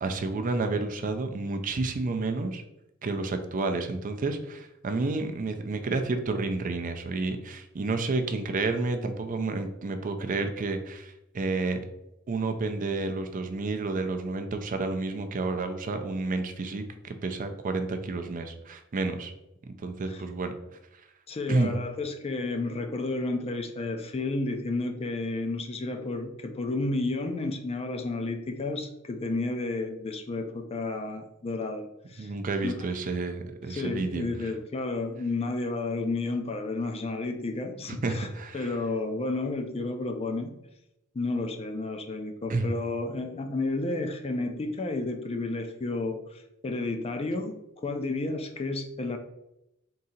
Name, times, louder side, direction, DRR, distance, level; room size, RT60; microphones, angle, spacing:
voice 1, 0.0-2.6 3.0-11.8 12.3-19.3 19.6-20.5 21.5-21.8 32.2-34.2 37.9-38.7 42.5-42.7, right 3 dB, 40° right, 7 dB, 0.4 m, -30 dB
voice 2, 21.3-32.3 32.6-32.7 33.7-38.3 38.5-40.6 41.1-49.2, left 2 dB, 30° left, 5 dB, 0.4 m, -31 dB
3.7 x 2.7 x 4.2 m, 0.85 s
head